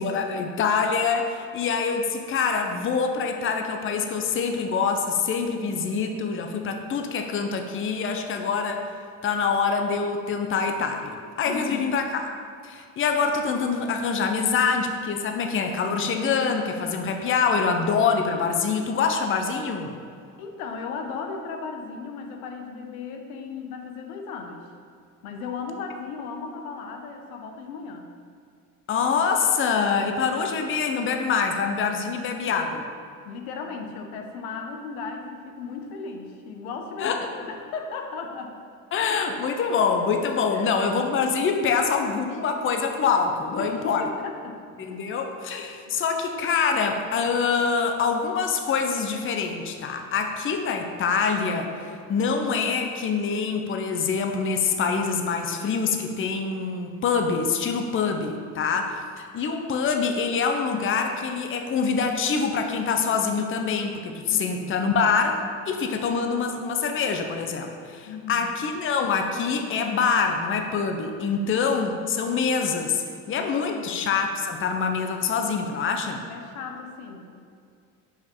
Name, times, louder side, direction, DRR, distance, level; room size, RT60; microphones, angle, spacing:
voice 1, 0.0-8.9 9.2-12.3 12.6-19.9 28.9-32.9 37.0-37.3 38.9-44.1 44.8-76.2, left 5 dB, 30° left, 4 dB, 0.7 m, -25 dB
voice 2, 11.5-12.0 17.1-17.4 20.4-24.7 25.2-28.1 33.2-38.6 40.5-40.8 43.6-44.6 44.9-45.0 45.9-46.0 64.3-64.8 68.1-68.5 73.3-74.1 76.3-77.3, left 5 dB, 85° left, 3 dB, 0.9 m, -36 dB
5.2 x 5.0 x 4.4 m, 2.3 s
supercardioid pair, 90°, 43 cm